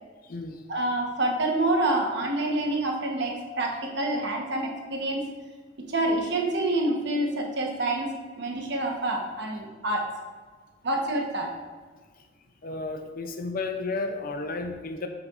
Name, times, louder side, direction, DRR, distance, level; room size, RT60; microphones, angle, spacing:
voice 1, 0.7-5.3 5.8-10.1 10.8-11.5, right 1 dB, 65° right, 1 dB, 1.1 m, -27 dB
voice 2, 12.6-15.1, left 3 dB, 50° left, 5 dB, 0.5 m, -32 dB
8.0 x 5.9 x 2.5 m, 1.5 s
head